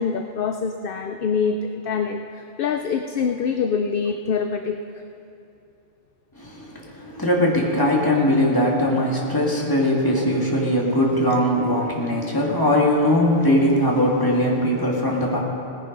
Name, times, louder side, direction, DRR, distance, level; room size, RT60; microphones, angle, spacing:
voice 1, 0.0-4.8, left 6 dB, 60° left, 6 dB, 0.8 m, -25 dB
voice 2, 6.4-15.4, left 1 dB, 20° left, -4 dB, 2.3 m, -20 dB
18.5 x 10.5 x 5.4 m, 2.7 s
omnidirectional pair, 1.1 m